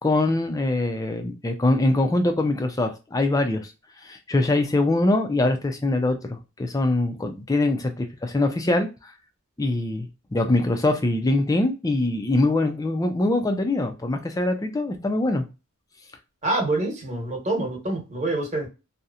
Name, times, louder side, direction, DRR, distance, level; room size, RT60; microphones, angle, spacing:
voice 1, 0.0-3.7 4.0-8.9 9.6-15.4, left 2 dB, 15° left, 6 dB, 0.3 m, -23 dB
voice 2, 16.4-18.7, right 2 dB, 30° right, -1 dB, 1.0 m, -26 dB
2.7 x 2.1 x 2.3 m, 0.29 s
head